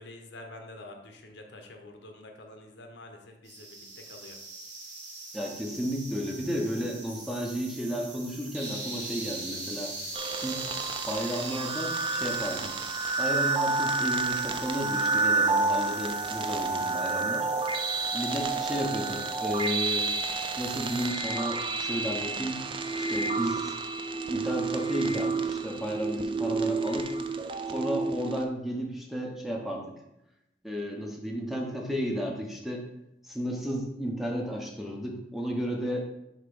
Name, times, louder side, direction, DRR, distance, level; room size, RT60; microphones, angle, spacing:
voice 1, 0.0-4.4, left 2 dB, 65° left, 3 dB, 0.9 m, -47 dB
sound 1, 3.4-21.1, right 2 dB, 65° right, 1.8 m, -42 dB
voice 2, 5.3-9.9 10.4-10.6 11.1-12.7 13.2-17.5 18.1-20.1 20.6-22.6 23.0-23.8 24.3-27.1 27.7-29.9 30.6-32.9 33.2-36.0, equal, ahead, -1 dB, 0.7 m, -33 dB
sound 2, 10.1-28.4, right 3 dB, 25° right, 0.4 m, -30 dB
6.6 x 2.9 x 5.3 m, 0.88 s
head